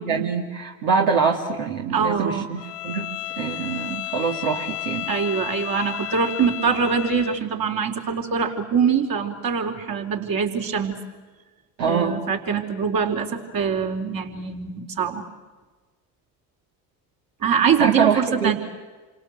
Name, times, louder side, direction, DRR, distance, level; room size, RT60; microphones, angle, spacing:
voice 1, 0.0-3.1 3.4-5.1 11.8-12.2 17.8-18.5, right 6 dB, 70° right, 0 dB, 2.8 m, -24 dB
voice 2, 1.9-2.5 5.1-11.0 11.8-15.3 17.4-18.6, right 6 dB, 45° right, 3 dB, 4.2 m, -23 dB
Bowed string instrument, 2.6-7.5, left 18 dB, 75° left, 1.4 m, -32 dB
29.5 x 25.5 x 8.0 m, 1.3 s
hypercardioid pair, 70°, 48 cm